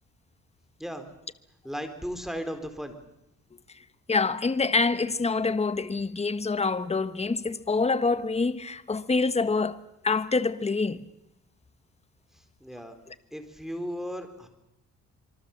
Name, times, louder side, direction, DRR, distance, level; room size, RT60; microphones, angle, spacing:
voice 1, 1.6-3.0 12.3-13.0 13.3-14.5, equal, ahead, 4.2 m, -36 dB
voice 2, 4.1-9.8 10.0-11.1, left 4 dB, 20° left, 1.3 m, -26 dB
26.0 x 24.0 x 7.4 m
cardioid pair, 90°, 30 cm